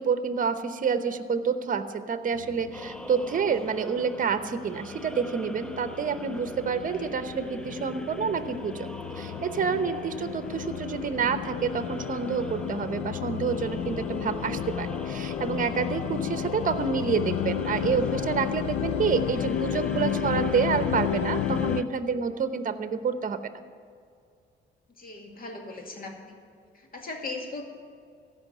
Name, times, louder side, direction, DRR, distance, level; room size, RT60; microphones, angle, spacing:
voice 1, 0.0-23.4, right 6 dB, 40° right, 10 dB, 1.0 m, -28 dB
sound 1, 2.4-21.8, left 9 dB, 75° left, 0.6 m, -32 dB
sound 2, 2.7-21.9, equal, 5° left, 0.6 m, -44 dB
voice 2, 25.0-26.3 26.7-27.6, left 3 dB, 45° left, 2 dB, 2.2 m, -39 dB
15.0 x 5.7 x 9.3 m, 2.2 s
cardioid pair, 90°, 20 cm